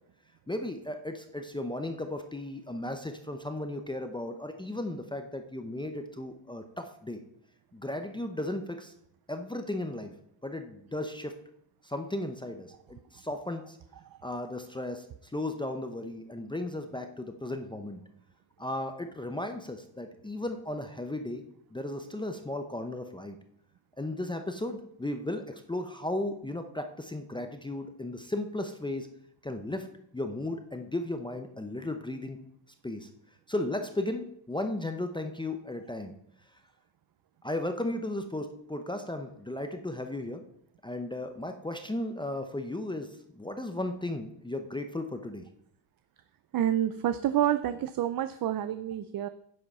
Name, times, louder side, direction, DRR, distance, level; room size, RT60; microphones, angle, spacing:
voice 1, 0.5-7.2 7.7-8.9 9.3-10.1 10.4-11.4 11.8-13.8 14.2-15.1 15.3-18.0 18.6-21.4 21.7-23.4 24.0-29.1 29.4-29.9 30.1-32.4 32.8-33.1 33.5-36.1 37.4-40.4 40.8-43.1 43.3-45.4, left 1 dB, 10° left, 6 dB, 0.7 m, -35 dB
voice 2, 46.5-49.3, right 11 dB, 45° right, 12 dB, 0.5 m, -28 dB
10.0 x 7.6 x 5.4 m, 0.73 s
cardioid pair, 150°, 50 cm